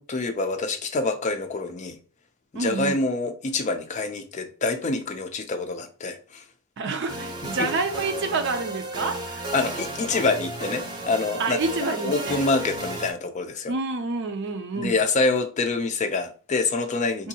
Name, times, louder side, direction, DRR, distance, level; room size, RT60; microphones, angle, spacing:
voice 1, 0.0-2.0 2.5-6.4 7.4-7.7 9.5-11.6 12.0-13.7 14.8-17.3, left 3 dB, 35° left, 0.4 m, -26 dB
voice 2, 2.5-3.0 6.8-9.4 11.4-12.4 13.7-15.0 17.2-17.3, right 3 dB, 55° right, 0.5 m, -28 dB
sound 1, 7.1-13.1, right 1 dB, 20° right, 0.7 m, -33 dB
3.7 x 2.6 x 2.7 m
head